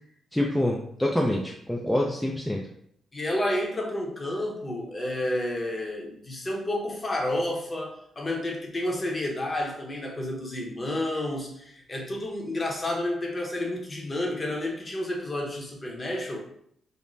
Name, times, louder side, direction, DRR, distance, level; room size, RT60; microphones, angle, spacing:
voice 1, 0.3-2.6, left 1 dB, 5° left, -1 dB, 0.3 m, -26 dB
voice 2, 3.1-16.4, left 1 dB, 30° left, 0 dB, 0.7 m, -30 dB
2.5 x 2.1 x 3.1 m, 0.69 s
cardioid pair, 90°, 0 cm